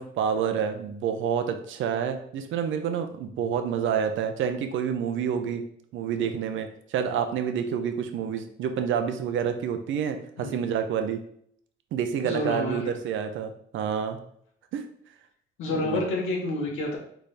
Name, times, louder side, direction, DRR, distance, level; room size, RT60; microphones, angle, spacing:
voice 1, 0.0-5.6 5.9-11.2 11.9-14.2 14.7-14.8 15.6-16.0, right 7 dB, 80° right, 7 dB, 0.6 m, -28 dB
voice 2, 12.2-12.9 15.6-17.0, left 2 dB, 90° left, -1 dB, 1.2 m, -29 dB
4.2 x 3.4 x 3.3 m, 0.66 s
cardioid pair, 90°, 20 cm